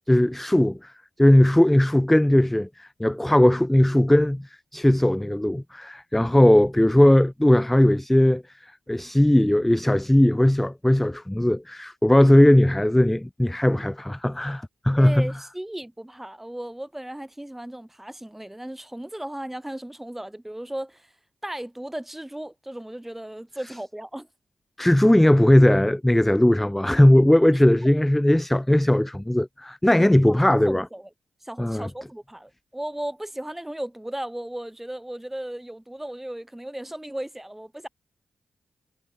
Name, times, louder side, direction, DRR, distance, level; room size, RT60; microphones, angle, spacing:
voice 1, 0.1-0.9 1.2-8.4 8.9-15.3 24.8-30.9 31.6-31.9, left 1 dB, 10° left, 0.4 m, -18 dB
voice 2, 15.0-21.1 21.4-24.3 27.5-27.6 30.4-31.1 31.4-37.9, right 1 dB, 10° right, 2.5 m, -36 dB
supercardioid pair, 45°, 2 cm